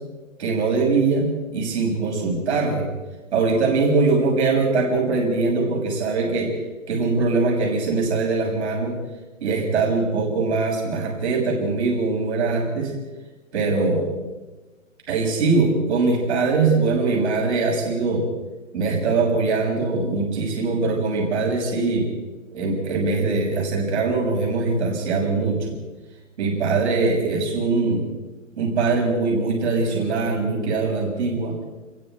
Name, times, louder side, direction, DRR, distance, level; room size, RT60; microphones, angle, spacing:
voice 1, 0.4-2.9 3.3-6.5 6.9-9.0 9.4-12.9 13.5-14.1 15.1-18.3 18.7-22.1 22.5-25.7 26.4-28.0 28.6-31.5, right 3 dB, 55° right, 0 dB, 6.6 m, -22 dB
28.0 x 22.0 x 4.6 m, 1.2 s
figure-of-eight pair, 135°, 39 cm